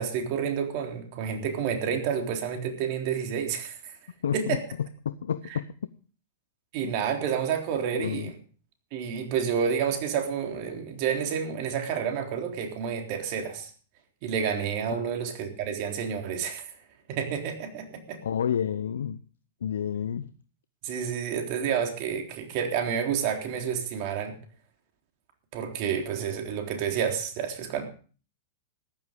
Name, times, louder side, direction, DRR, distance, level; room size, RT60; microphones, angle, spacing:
voice 1, 0.0-4.0 4.3-4.6 6.7-8.3 8.9-13.7 14.2-16.7 17.1-18.2 20.8-24.3 25.5-27.9, right 7 dB, 50° right, 4 dB, 3.7 m, -29 dB
voice 2, 4.2-5.9 6.8-6.9 7.9-8.3 14.9-15.1 18.2-19.2 19.6-20.3, left 8 dB, 80° left, 14 dB, 0.7 m, -30 dB
14.5 x 11.0 x 5.2 m, 0.39 s
hypercardioid pair, 110°, 0 cm